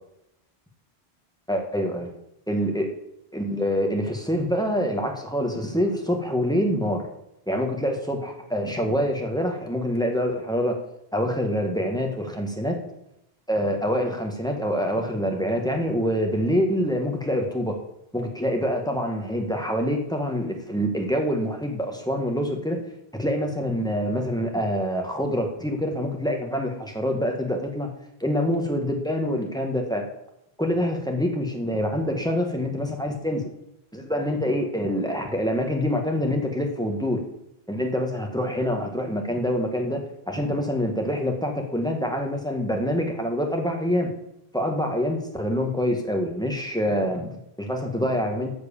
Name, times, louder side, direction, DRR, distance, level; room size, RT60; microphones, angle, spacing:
voice 1, 1.5-2.1 2.5-2.9 3.3-7.1 7.5-10.8 11.1-12.8 13.5-17.7 18.1-22.8 23.2-27.9 28.2-30.0 30.6-33.5 33.9-37.2 37.7-44.1 44.5-48.5, equal, 5° left, 2 dB, 1.8 m, -26 dB
13.5 x 5.0 x 7.2 m, 0.81 s
omnidirectional pair, 1.0 m